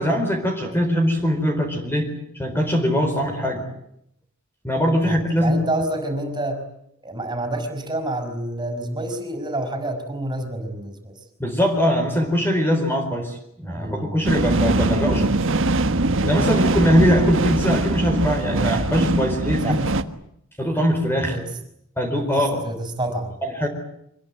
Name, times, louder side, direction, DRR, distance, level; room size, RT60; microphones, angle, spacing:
voice 1, 0.0-2.1 2.3-3.6 4.6-5.7 11.4-15.3 16.2-19.8 20.6-21.4 22.0-22.7 23.4-23.7, equal, 10° left, 4 dB, 4.3 m, -21 dB
voice 2, 5.0-6.6 7.0-11.1 13.8-14.3 16.8-17.0 19.6-20.0 21.3-21.4 22.4-23.4, right 1 dB, 20° right, 7 dB, 5.6 m, -28 dB
sound 1, 14.2-20.0, right 2 dB, 60° right, 1.5 m, -22 dB
26.0 x 21.0 x 9.4 m, 0.74 s
head